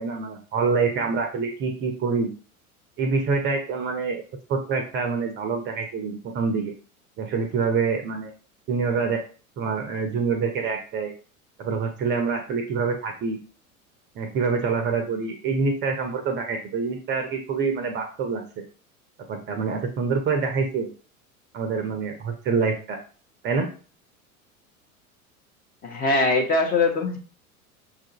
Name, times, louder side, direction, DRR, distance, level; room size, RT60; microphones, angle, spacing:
voice 1, 0.0-2.3 3.0-4.2 4.5-6.7 7.2-8.3 8.7-9.2 9.6-11.1 11.6-13.4 14.2-18.4 19.3-20.9 21.5-23.0 23.4-23.7, right 5 dB, 25° right, 5 dB, 0.6 m, -26 dB
voice 2, 25.8-27.2, left 3 dB, 20° left, 1 dB, 0.7 m, -22 dB
5.8 x 2.4 x 2.8 m, 0.38 s
figure-of-eight pair, 80°, 43 cm